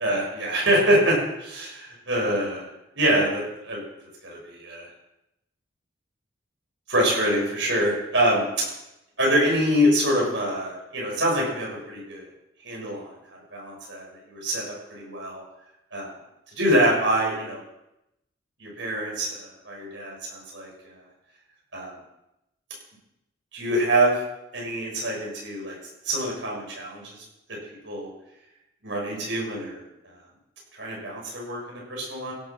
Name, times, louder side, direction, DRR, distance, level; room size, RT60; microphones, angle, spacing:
voice 1, 0.0-2.6 2.9-3.8 4.2-4.8 6.9-8.4 9.2-12.2 12.6-13.0 13.5-15.4 15.9-16.1 16.6-17.6 18.6-20.7 21.7-21.9 23.5-24.2 24.5-25.8 26.0-27.2 27.8-28.1 28.8-29.8 30.8-32.3, right 1 dB, 75° right, -3 dB, 6.5 m, -25 dB
17.0 x 7.2 x 6.1 m, 0.89 s
head